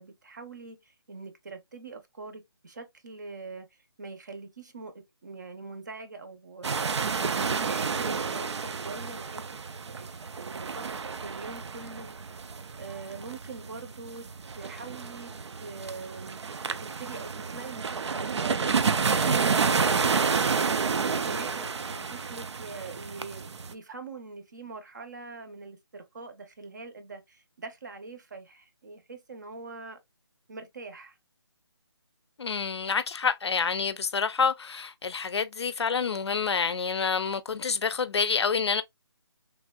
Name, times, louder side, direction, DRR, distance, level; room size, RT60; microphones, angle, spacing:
voice 1, 0.0-6.7 7.1-9.4 9.7-10.1 10.4-10.9 11.2-12.2 12.8-14.3 14.5-16.4 16.8-18.6 20.8-30.0 30.5-31.2, right 4 dB, 40° right, 0.7 m, -43 dB
sound 1, 6.6-23.7, right 5 dB, 85° right, 0.4 m, -30 dB
voice 2, 32.4-38.8, left 5 dB, 70° left, 0.5 m, -28 dB
3.2 x 2.5 x 2.3 m
hypercardioid pair, 170°, 14 cm